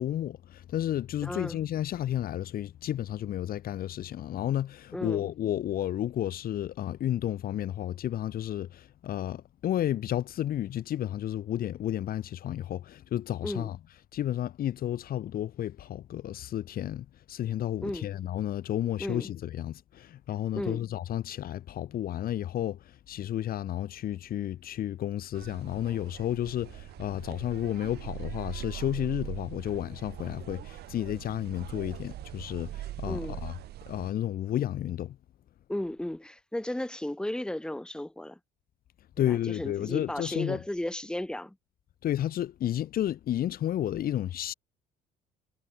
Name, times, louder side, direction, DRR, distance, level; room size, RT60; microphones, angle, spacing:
voice 1, 0.0-13.8 14.1-33.5 33.9-35.2 39.2-40.6 42.0-44.5, left 12 dB, 60° left, 2.2 m, -32 dB
voice 2, 1.2-1.6 4.9-5.3 13.4-13.7 17.8-18.1 19.0-19.3 20.5-20.8 33.1-33.4 35.7-38.4 39.2-41.6, left 1 dB, 5° left, 3.6 m, -34 dB
sound 1, 25.3-34.1, right 14 dB, 75° right, 6.3 m, -42 dB
cardioid pair, 110°, 17 cm